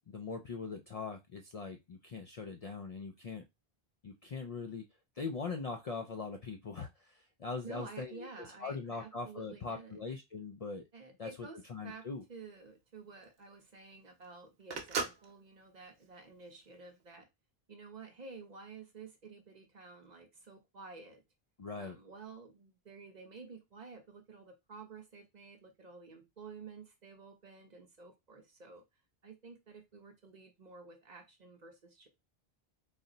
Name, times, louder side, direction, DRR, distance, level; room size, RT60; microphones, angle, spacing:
voice 1, 0.1-3.4 4.0-4.9 5.2-8.3 8.6-10.8 11.2-11.3 11.7-12.2 21.6-22.0, left 4 dB, 50° left, 3 dB, 0.4 m, -41 dB
voice 2, 7.6-10.0 10.9-12.0 12.3-17.3 17.7-21.2 21.8-28.8 29.2-32.1, right 4 dB, 45° right, 4 dB, 0.9 m, -51 dB
Telephone, 11.8-17.0, right 5 dB, 70° right, 1.0 m, -42 dB
4.0 x 2.1 x 3.8 m, 0.21 s
omnidirectional pair, 1.1 m